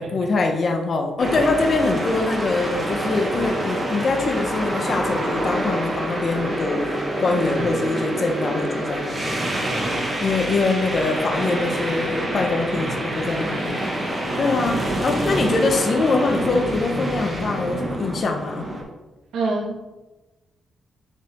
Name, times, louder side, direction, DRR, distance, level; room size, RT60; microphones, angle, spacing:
voice 1, 0.0-6.9 7.2-9.3 10.2-13.9 14.3-18.7, left 3 dB, 45° left, 3 dB, 1.0 m, -23 dB
sound 1, 1.2-18.8, right 1 dB, 20° right, 1.6 m, -26 dB
voice 2, 9.3-10.0 12.8-12.9 14.3-14.9 19.3-19.8, right 3 dB, 90° right, -1 dB, 1.6 m, -29 dB
7.1 x 4.9 x 3.7 m, 1.1 s
cardioid pair, 130°, 0 cm